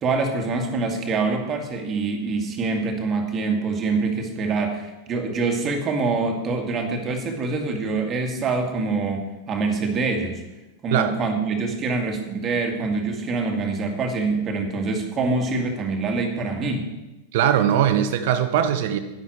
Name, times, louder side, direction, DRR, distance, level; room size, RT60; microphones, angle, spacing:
voice 1, 0.0-10.4 10.8-16.8, right 3 dB, 25° right, 3 dB, 2.2 m, -25 dB
voice 2, 17.3-19.0, right 9 dB, 50° right, 9 dB, 1.1 m, -20 dB
11.0 x 11.0 x 4.6 m, 1.0 s
figure-of-eight pair, 90°, 0 cm